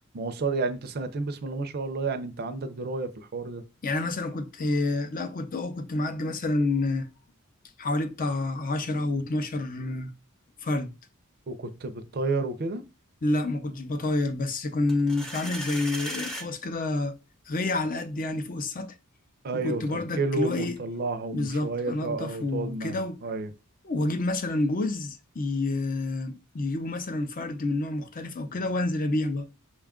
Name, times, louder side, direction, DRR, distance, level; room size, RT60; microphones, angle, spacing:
voice 1, 0.1-3.6 11.5-12.8 19.4-23.0 23.2-23.5, right 3 dB, 45° right, 0.5 m, -31 dB
voice 2, 3.8-7.1 7.8-10.1 10.6-10.9 13.2-17.2 17.5-19.0 19.5-20.8 21.3-23.2 23.8-29.5, left 2 dB, 40° left, 0.5 m, -28 dB
sound 1, 14.9-16.5, equal, ahead, 0.7 m, -36 dB
6.0 x 2.3 x 3.6 m
head